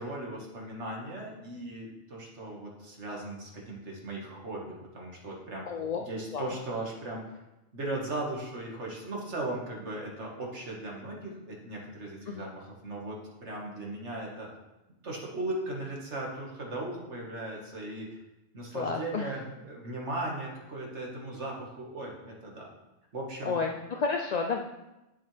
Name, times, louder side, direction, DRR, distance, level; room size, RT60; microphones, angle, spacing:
voice 1, 0.0-5.6 6.0-7.4 7.7-14.5 15.0-18.1 18.5-22.7 23.1-23.6, right 2 dB, 60° right, -2 dB, 2.2 m, -37 dB
voice 2, 5.7-6.0 6.3-6.6 12.3-12.5 18.7-19.4 23.4-24.6, left 5 dB, 50° left, 2 dB, 0.5 m, -31 dB
10.0 x 7.2 x 3.4 m, 0.99 s
omnidirectional pair, 1.3 m